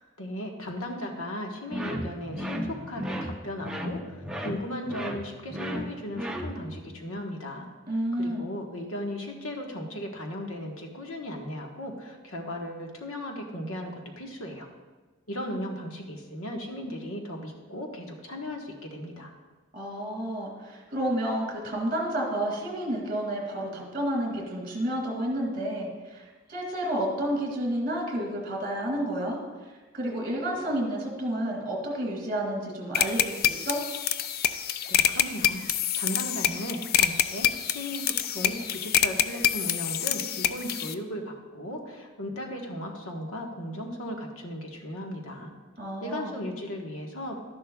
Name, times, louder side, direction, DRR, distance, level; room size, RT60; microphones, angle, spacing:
voice 1, 0.2-7.7 8.2-14.7 15.3-19.3 34.9-45.5 46.0-47.4, left 1 dB, 80° left, 1 dB, 1.4 m, -36 dB
sound 1, 1.7-6.8, equal, 5° right, 0.6 m, -35 dB
voice 2, 7.9-8.5 19.7-29.4 29.9-33.8 45.8-46.4, right 1 dB, 45° right, 0 dB, 2.3 m, -30 dB
sound 2, 32.9-40.9, left 10 dB, 45° left, 0.3 m, -26 dB
12.5 x 10.5 x 2.4 m, 1.3 s
head